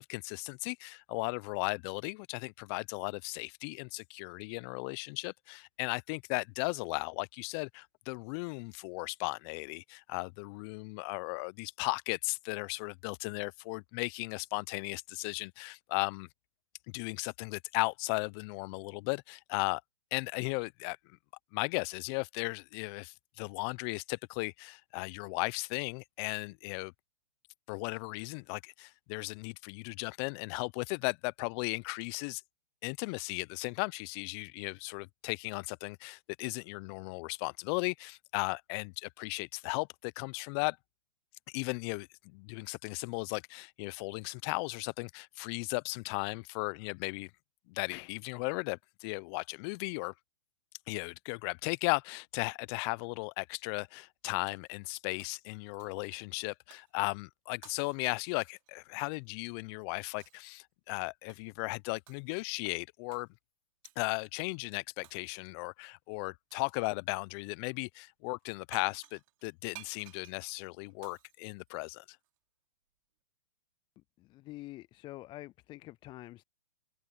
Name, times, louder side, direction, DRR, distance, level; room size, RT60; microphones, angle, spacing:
voice 1, 0.0-16.3 16.9-19.8 20.1-21.0 21.5-26.9 27.7-32.4 32.8-40.8 41.5-47.3 47.7-50.1 50.9-63.3 64.0-72.0, left 30 dB, 35° left, 0.9 m, -36 dB
Shatter, 54.3-54.9 55.2-56.1 56.7-57.0 57.6-59.2 60.2-60.5 61.3-61.6 62.1-62.5 63.1-63.3 63.8-64.1 65.0-65.6 66.5-66.9 68.4-68.5 68.7-72.3, right 19 dB, 50° right, 3.3 m, -57 dB
voice 2, 74.2-76.4, left 17 dB, 20° left, 0.5 m, -47 dB
hypercardioid pair, 120°, 21 cm